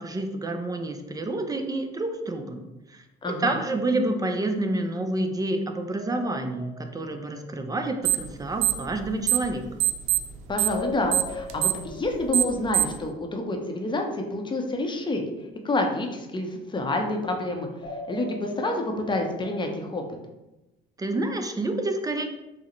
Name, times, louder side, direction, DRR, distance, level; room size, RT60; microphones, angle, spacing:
voice 1, 0.0-2.6 2.9-9.7 21.0-22.2, right 2 dB, 15° right, 6 dB, 0.5 m, -28 dB
voice 2, 3.2-3.5 10.5-15.2 15.6-17.7 18.1-20.0, left 2 dB, 20° left, 3 dB, 0.7 m, -28 dB
sound 1, 5.9-8.0 10.6-13.5 17.8-20.0, left 3 dB, 60° left, 0.9 m, -40 dB
sound 2, 8.0-8.3 8.6-9.5 9.8-13.0, right 13 dB, 85° right, 0.4 m, -23 dB
4.8 x 2.1 x 3.0 m, 1.0 s
supercardioid pair, 85°, 21 cm